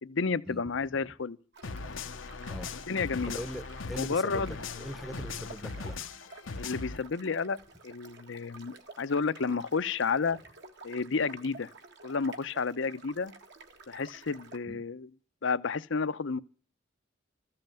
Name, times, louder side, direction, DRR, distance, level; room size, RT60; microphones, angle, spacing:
voice 1, 0.0-1.4 2.9-3.4 4.0-4.5 6.6-7.6 7.8-10.4 10.8-11.7 12.0-13.3 13.9-15.1 15.4-16.4, left 4 dB, 70° left, 0.7 m, -31 dB
sound 1, 1.5-14.6, right 3 dB, 65° right, 1.7 m, -52 dB
sound 2, 1.6-7.0, left 4 dB, 90° left, 1.0 m, -39 dB
voice 2, 3.2-6.0 14.7-14.8, equal, ahead, 0.8 m, -41 dB
14.5 x 7.7 x 9.0 m
head